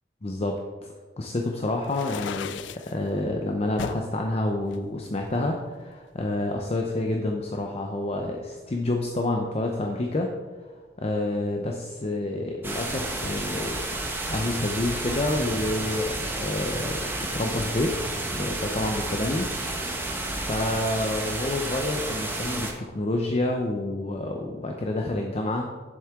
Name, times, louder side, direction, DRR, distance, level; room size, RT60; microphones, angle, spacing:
voice 1, 0.2-2.5 2.9-10.3 10.6-10.7 11.0-13.8 14.3-17.0 17.3-19.5 20.3-25.7, left 2 dB, 35° left, 2 dB, 0.7 m, -28 dB
sound 1, 1.8-2.9 3.8-4.1 4.7-5.8, left 7 dB, 85° left, 0.4 m, -36 dB
sound 2, 12.6-22.7, right 2 dB, 10° right, 1.2 m, -31 dB
10.5 x 7.5 x 3.7 m, 1.4 s
head